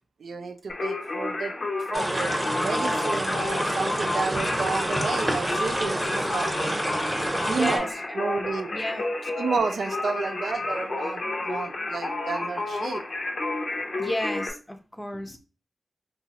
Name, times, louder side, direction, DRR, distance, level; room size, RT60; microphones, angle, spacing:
voice 1, 0.2-1.5 1.9-2.4 2.6-6.5 7.4-7.9 8.1-8.7 9.4-13.0, right 5 dB, 90° right, 7 dB, 0.4 m, -31 dB
Singing, 0.7-14.5, left 2 dB, 55° left, 0.6 m, -31 dB
sound 1, 1.9-7.8, right 1 dB, 20° right, 0.8 m, -28 dB
voice 2, 7.5-8.2 8.7-9.1 14.0-15.4, left 1 dB, 10° left, 6 dB, 0.5 m, -32 dB
3.9 x 2.3 x 2.8 m, 0.32 s
wide cardioid pair, 130°, 0 cm